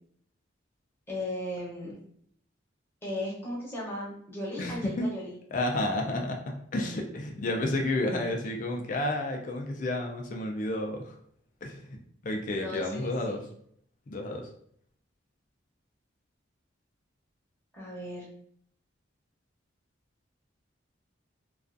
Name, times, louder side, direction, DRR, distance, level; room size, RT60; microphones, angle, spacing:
voice 1, 1.1-1.9 3.0-5.4 12.5-13.4 17.7-18.2, left 1 dB, 10° left, -6 dB, 0.8 m, -36 dB
voice 2, 4.6-5.1 5.5-11.1 11.6-12.0 12.2-13.4 14.1-14.5, left 1 dB, 40° left, 2 dB, 0.4 m, -31 dB
2.4 x 2.3 x 2.4 m, 0.65 s
head